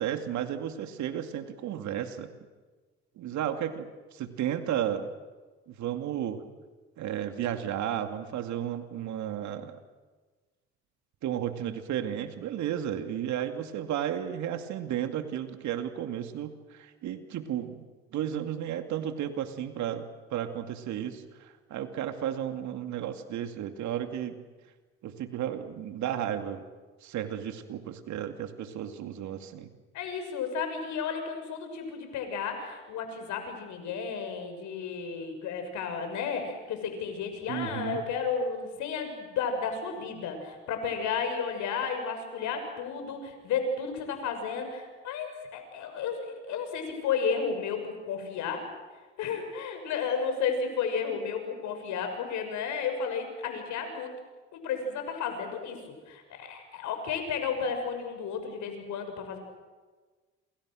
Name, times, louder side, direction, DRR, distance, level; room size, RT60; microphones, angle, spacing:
voice 1, 0.0-2.3 3.2-5.1 5.7-6.4 7.0-9.8 11.2-17.8 18.1-24.4 25.0-26.6 27.0-29.7 37.5-38.0, right 10 dB, 70° right, 7 dB, 2.5 m, -33 dB
voice 2, 29.9-48.7 49.2-54.1 54.5-55.8 56.1-59.4, left 6 dB, 70° left, 6 dB, 6.5 m, -33 dB
28.5 x 28.0 x 6.4 m, 1.3 s
supercardioid pair, 65°, 30 cm